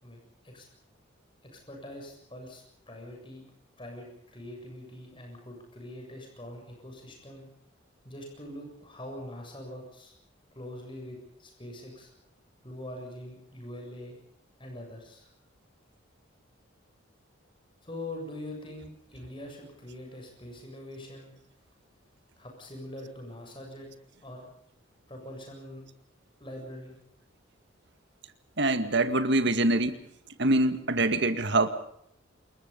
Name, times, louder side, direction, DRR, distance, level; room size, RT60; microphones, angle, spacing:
voice 1, 0.0-0.7 1.4-3.5 3.8-7.5 8.0-10.1 10.5-12.1 12.6-14.2 14.6-15.3 17.8-21.3 22.4-23.9 24.2-24.5 25.1-25.8 26.4-26.9, left 1 dB, 25° left, 1 dB, 7.5 m, -43 dB
voice 2, 28.6-30.0 30.4-31.7, right 2 dB, 55° right, 9 dB, 2.0 m, -24 dB
28.0 x 21.5 x 5.5 m, 0.71 s
head